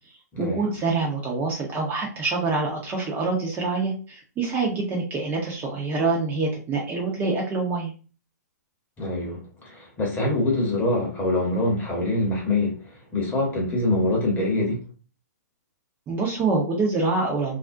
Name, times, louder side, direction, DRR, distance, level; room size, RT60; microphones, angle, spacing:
voice 1, 0.4-7.9 16.1-17.6, right 3 dB, 20° right, 0.6 m, -26 dB
voice 2, 9.0-14.8, left 2 dB, 20° left, 0.9 m, -25 dB
2.4 x 2.1 x 2.5 m
figure-of-eight pair, 120°, 10 cm